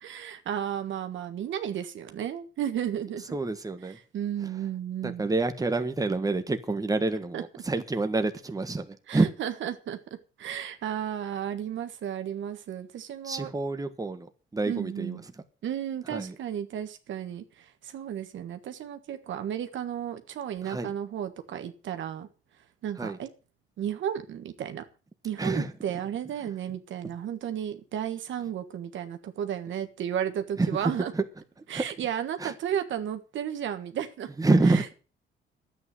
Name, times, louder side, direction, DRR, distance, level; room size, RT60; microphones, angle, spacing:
voice 1, 0.0-3.4 3.9-5.2 7.3-7.4 9.1-13.5 14.7-15.2 15.6-22.3 22.8-23.3 23.8-24.8 25.2-31.1 31.7-34.3 34.6-34.9, right 9 dB, 70° right, 8 dB, 1.6 m, -33 dB
voice 2, 3.3-4.0 5.0-9.3 13.2-15.2 16.1-16.3 20.6-20.9 23.0-23.2 25.4-25.7 30.6-31.2 31.7-31.8 32.4-32.5 34.4-34.9, right 3 dB, 20° right, 8 dB, 1.5 m, -27 dB
10.5 x 8.8 x 7.8 m, 0.36 s
cardioid pair, 90°, 20 cm